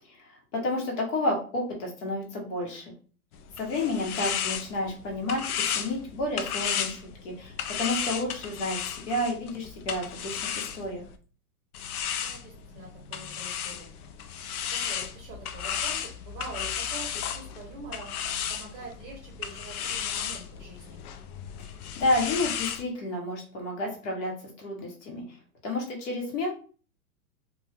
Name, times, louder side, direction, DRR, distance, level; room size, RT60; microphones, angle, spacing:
voice 1, 0.1-2.9 3.6-5.4 5.7-11.0 21.6-24.3 24.6-25.4 25.6-26.5, left 1 dB, 55° left, 0 dB, 1.2 m, -31 dB
sound 1, 3.3-11.2 11.7-22.8, left 8 dB, 75° left, 0.5 m, -34 dB
voice 2, 3.8-4.1 12.2-13.9 14.2-14.4 14.7-18.1 18.5-21.0, right 3 dB, 25° right, -2 dB, 0.8 m, -45 dB
2.4 x 2.3 x 3.3 m, 0.39 s
hypercardioid pair, 150°, 46 cm